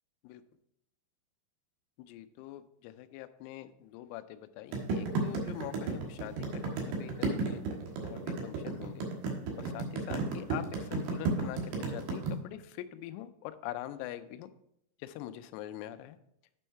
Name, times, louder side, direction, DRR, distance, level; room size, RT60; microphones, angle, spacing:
voice 1, 2.1-7.6 8.0-9.1 9.6-11.6 11.9-14.5 15.0-16.2, left 13 dB, 90° left, 10 dB, 3.3 m, -44 dB
sound 1, 4.7-12.3, right 4 dB, 70° right, 2.9 m, -32 dB
9.1 x 5.4 x 4.5 m, 0.76 s
omnidirectional pair, 6.0 m